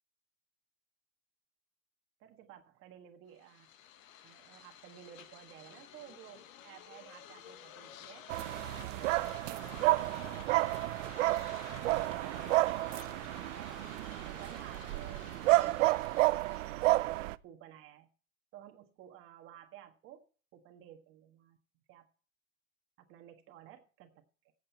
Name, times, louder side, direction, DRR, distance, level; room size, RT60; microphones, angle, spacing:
voice 1, 2.2-3.7 4.2-13.8 14.2-18.1 18.5-20.2 20.5-21.6 21.9-22.1 23.0-24.5, right 10 dB, 30° right, 5 dB, 1.5 m, -54 dB
sound 1, 3.3-16.9, left 10 dB, 70° left, 1.5 m, -52 dB
sound 2, 8.3-17.4, right 18 dB, 65° right, 0.6 m, -31 dB
15.0 x 8.0 x 4.5 m, 0.39 s
supercardioid pair, 160°, 42 cm